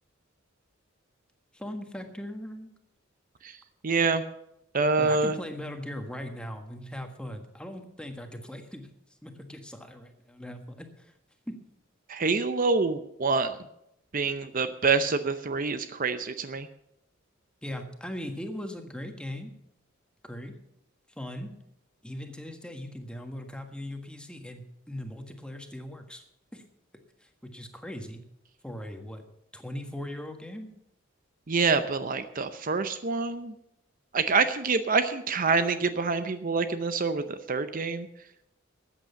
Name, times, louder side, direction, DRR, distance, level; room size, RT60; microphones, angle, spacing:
voice 1, 1.5-2.7 5.0-8.9 9.2-11.1 11.5-11.6 17.6-19.5 20.2-20.5 21.2-21.5 22.0-26.2 26.5-26.6 27.2-28.2 28.6-29.2 29.5-30.7, left 1 dB, 5° left, 5 dB, 1.5 m, -39 dB
voice 2, 3.8-4.2 4.7-5.4 12.1-13.5 14.1-16.7 31.5-33.5 34.1-38.1, right 4 dB, 45° right, 10 dB, 0.7 m, -26 dB
13.5 x 9.0 x 7.0 m, 0.81 s
head